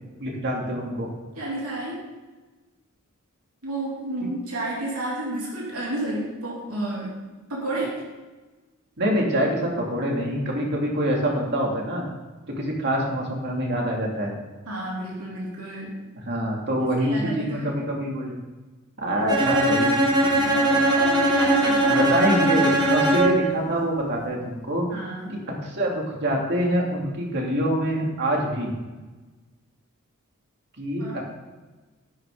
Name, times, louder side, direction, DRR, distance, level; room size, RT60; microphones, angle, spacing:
voice 1, 0.2-1.1 4.2-4.3 9.0-12.0 12.6-14.3 16.2-18.3 19.0-19.9 21.9-24.9 25.6-28.7 30.8-31.2, equal, 50° right, -1 dB, 2.6 m, -25 dB
voice 2, 1.4-2.0 3.6-7.1 7.5-8.0 14.7-15.9 17.0-17.7 20.4-22.1 24.9-25.4 31.0-31.2, right 1 dB, 85° right, -4 dB, 3.0 m, -31 dB
Bowed string instrument, 19.3-23.5, right 1 dB, 20° right, 2.0 m, -20 dB
12.0 x 10.0 x 3.8 m, 1.2 s
head